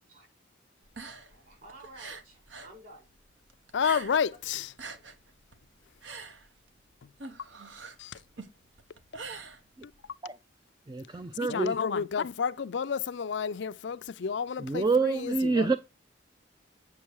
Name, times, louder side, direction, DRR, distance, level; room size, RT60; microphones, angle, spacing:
sound 1, 0.8-2.8 3.0-4.4 4.6-10.1, right 4 dB, 75° right, 1.2 m, -44 dB
voice 1, 1.3-3.1 3.9-4.0 4.3-4.4 4.8-5.3, right 1 dB, 50° right, 6.8 m, -52 dB
voice 2, 3.7-4.7 8.0-8.2 11.5-15.8, left 6 dB, 70° left, 0.4 m, -30 dB
voice 3, 10.9-11.8 14.6-15.8, right 3 dB, 20° right, 0.4 m, -27 dB
8.5 x 6.3 x 4.6 m
head